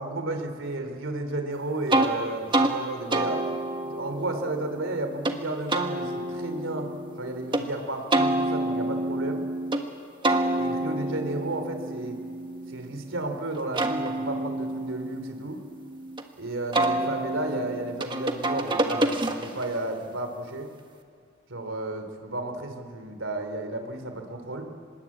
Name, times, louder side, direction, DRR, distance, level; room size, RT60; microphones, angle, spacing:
voice 1, 0.0-3.4 3.8-6.9 7.2-9.5 10.6-12.2 12.7-15.6 16.4-20.7 21.5-24.7, right 2 dB, 75° right, 6 dB, 3.1 m, -33 dB
sound 1, 1.9-2.1 2.5-2.7 3.1-5.4 5.7-7.6 8.1-9.8 10.2-13.1 13.5-16.2 16.7-19.7, right 1 dB, 25° right, 1.4 m, -28 dB
26.0 x 21.0 x 8.5 m, 2.2 s
head